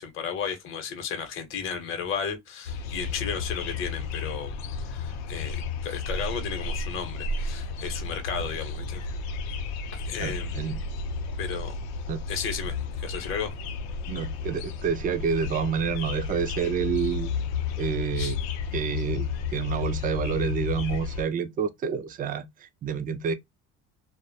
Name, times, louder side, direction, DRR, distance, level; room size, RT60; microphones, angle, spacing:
voice 1, 0.0-4.5 4.9-9.0 9.9-10.6 11.4-11.7 12.3-13.5 18.2-18.4, left 7 dB, 45° left, 0.8 m, -34 dB
sound 1, 2.6-21.2, left 4 dB, 85° left, 0.5 m, -32 dB
voice 2, 10.2-10.8 12.1-12.2 14.1-17.3 17.8-18.4 18.7-19.3 19.5-23.3, right 7 dB, 30° right, 0.4 m, -28 dB
2.3 x 2.1 x 2.6 m
cardioid pair, 140°, 29 cm